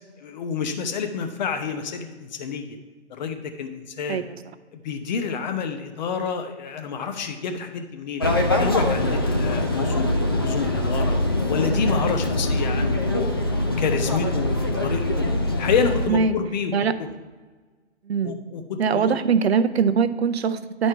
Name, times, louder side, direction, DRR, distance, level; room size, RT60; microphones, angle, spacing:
voice 1, 0.2-2.8 3.1-4.2 4.7-8.2 8.6-11.1 11.5-13.3 13.7-15.3 15.6-16.7 17.0-17.1 18.2-19.1, left 6 dB, 40° left, 6 dB, 0.8 m, -28 dB
sound 1, 8.2-16.1, left 1 dB, 20° left, 0.3 m, -23 dB
voice 2, 18.8-20.9, right 6 dB, 60° right, 12 dB, 0.6 m, -21 dB
10.5 x 4.3 x 4.5 m, 1.4 s
figure-of-eight pair, 140°, 35 cm